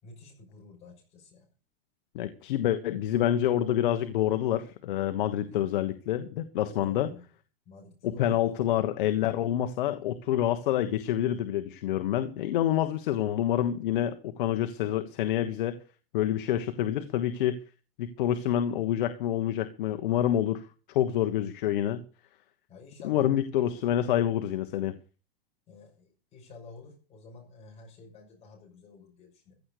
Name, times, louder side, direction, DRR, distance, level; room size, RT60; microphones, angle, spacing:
voice 1, 0.0-1.5 5.5-5.6 6.6-7.2 7.7-8.5 22.7-23.4 25.7-29.5, left 3 dB, 20° left, 0 dB, 6.3 m, -49 dB
voice 2, 2.1-7.1 8.0-15.8 16.1-17.6 18.0-20.6 20.9-22.0 23.0-24.9, left 11 dB, 55° left, 9 dB, 1.3 m, -27 dB
15.5 x 8.2 x 6.7 m, 0.36 s
supercardioid pair, 165°, 30 cm